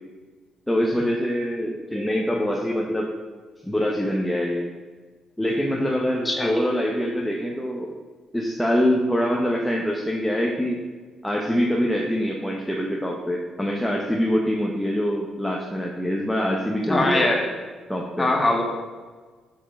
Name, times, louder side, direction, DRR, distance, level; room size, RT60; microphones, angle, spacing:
voice 1, 0.7-3.1 3.6-4.6 5.4-7.9 8.3-10.8 11.2-17.3 17.9-18.3, equal, 5° left, -2 dB, 1.0 m, -24 dB
voice 2, 6.3-6.6 16.9-17.5 18.2-18.6, left 2 dB, 20° left, 0 dB, 1.8 m, -21 dB
6.1 x 6.0 x 6.0 m, 1.4 s
cardioid pair, 90°, 0 cm